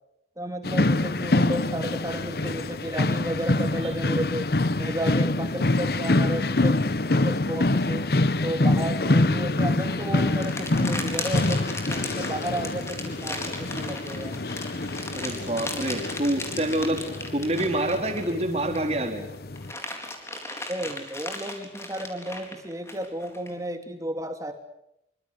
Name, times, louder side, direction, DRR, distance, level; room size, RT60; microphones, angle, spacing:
voice 1, 0.4-4.5 4.8-6.8 7.1-8.1 8.4-14.3 20.7-24.5, right 1 dB, 20° right, 6 dB, 3.0 m, -33 dB
sound 1, 0.6-19.7, left 2 dB, 60° left, 1.0 m, -26 dB
sound 2, 9.7-18.9 19.3-23.5, left 2 dB, 15° left, 4.2 m, -36 dB
voice 2, 15.1-17.0 17.3-19.2, right 1 dB, 35° right, 3 dB, 4.0 m, -26 dB
26.5 x 24.5 x 8.3 m, 0.81 s
head